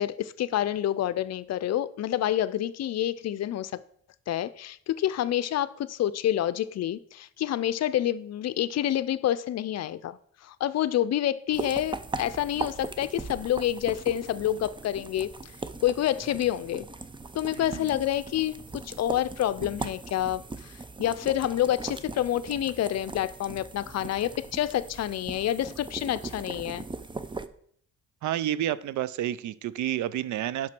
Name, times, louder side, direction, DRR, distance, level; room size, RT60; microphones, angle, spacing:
voice 1, 0.0-3.8 4.3-10.2 10.4-15.3 15.8-16.9 17.3-20.7 21.0-26.8, left 12 dB, 60° left, 0.6 m, -28 dB
sound 1, 11.5-27.5, right 3 dB, 15° right, 0.5 m, -39 dB
voice 2, 17.6-17.9 28.2-30.7, right 12 dB, 70° right, 0.5 m, -30 dB
7.4 x 6.0 x 6.0 m
cardioid pair, 90°, 30 cm